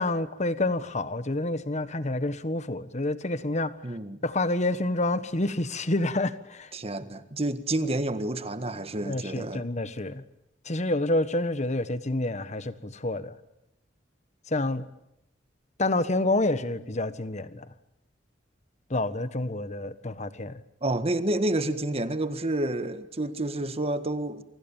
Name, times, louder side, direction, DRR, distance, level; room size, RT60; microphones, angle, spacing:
voice 1, 0.0-4.0 4.2-6.7 9.0-10.2 10.6-13.4 14.5-14.9 15.8-17.7 18.9-20.6, left 2 dB, 40° left, 1.4 m, -28 dB
voice 2, 3.8-4.2 6.7-9.7 20.8-24.4, right 1 dB, 35° right, 1.7 m, -29 dB
29.5 x 25.5 x 7.4 m
head